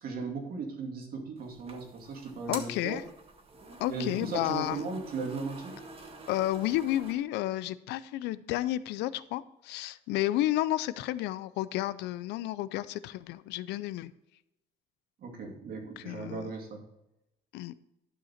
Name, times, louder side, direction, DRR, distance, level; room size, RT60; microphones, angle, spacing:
voice 1, 0.0-3.0 3.9-5.8 15.2-16.8, right 4 dB, 60° right, 2 dB, 2.3 m, -37 dB
sound 1, 1.4-7.1, right 3 dB, 35° right, 1.6 m, -47 dB
voice 2, 2.5-3.0 3.8-4.8 6.3-14.1 16.0-16.5 17.5-17.7, left 15 dB, 85° left, 16 dB, 0.5 m, -31 dB
12.0 x 5.8 x 4.3 m, 0.88 s
cardioid pair, 110°, 17 cm